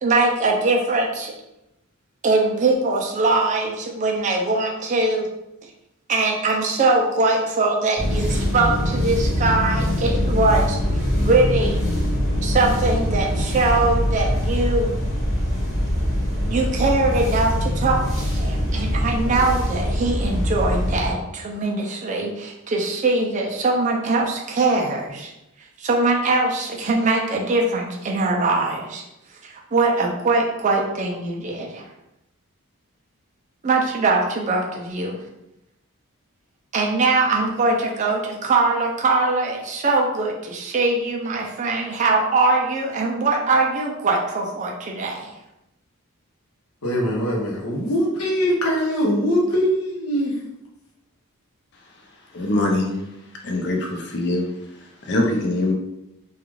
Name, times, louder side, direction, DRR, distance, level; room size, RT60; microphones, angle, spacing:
voice 1, 0.0-1.3 2.2-5.3 6.1-10.8 11.2-11.8 12.4-14.9 16.5-25.3 25.8-29.0 29.4-31.8 33.6-35.2 36.7-45.3, right 3 dB, 35° right, 0 dB, 0.4 m, -22 dB
sound 1, 8.0-21.1, equal, ahead, 0.7 m, -23 dB
voice 2, 46.8-50.4, equal, 90° left, -3 dB, 0.8 m, -22 dB
voice 3, 52.3-53.0 53.4-55.7, left 2 dB, 50° left, 1 dB, 0.5 m, -23 dB
2.3 x 2.3 x 3.0 m, 0.89 s
head